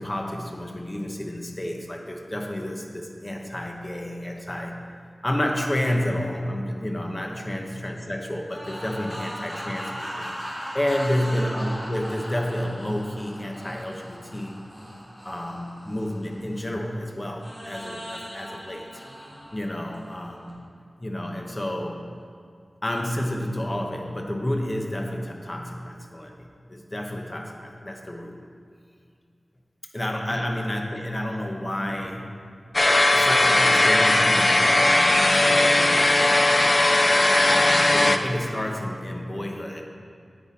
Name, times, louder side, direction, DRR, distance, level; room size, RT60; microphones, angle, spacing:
voice 1, 0.0-4.8 5.2-10.3 10.7-14.5 15.2-18.9 19.5-20.6 21.0-22.1 22.8-28.3 29.9-32.3 33.1-36.9 37.4-39.9, left 1 dB, 25° left, 2 dB, 1.1 m, -30 dB
sound 1, 8.5-16.8 17.4-20.5, equal, 5° left, 2.7 m, -38 dB
sound 2, 32.7-38.2, left 2 dB, 45° left, 0.5 m, -18 dB
9.4 x 9.0 x 4.2 m, 2.2 s
wide cardioid pair, 85°, 0 cm